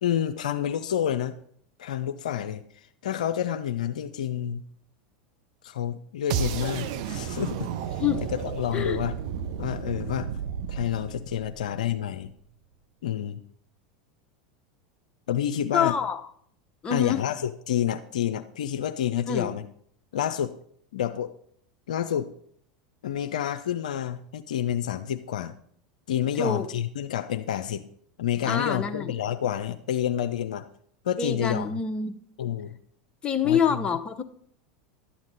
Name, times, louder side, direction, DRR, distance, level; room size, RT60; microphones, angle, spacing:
voice 1, 0.0-1.3 1.8-2.6 3.0-4.6 5.6-7.7 8.4-9.1 9.6-10.3 10.7-12.3 13.0-13.4 15.3-15.9 16.9-19.6 20.1-20.6 20.9-21.3 21.9-22.3 23.0-25.5 26.1-27.9 28.2-30.7 31.0-31.8 32.4-32.8 33.4-33.8, left 10 dB, 75° left, 9 dB, 0.5 m, -28 dB
sound 1, 6.3-12.3, right 8 dB, 60° right, 0.6 m, -33 dB
voice 2, 15.7-16.2 16.8-17.2 19.3-19.5 26.4-26.6 28.4-29.1 31.2-32.2 33.2-34.2, left 7 dB, 25° left, 7 dB, 0.8 m, -26 dB
11.5 x 7.3 x 4.0 m, 0.62 s
hypercardioid pair, 90°, 4 cm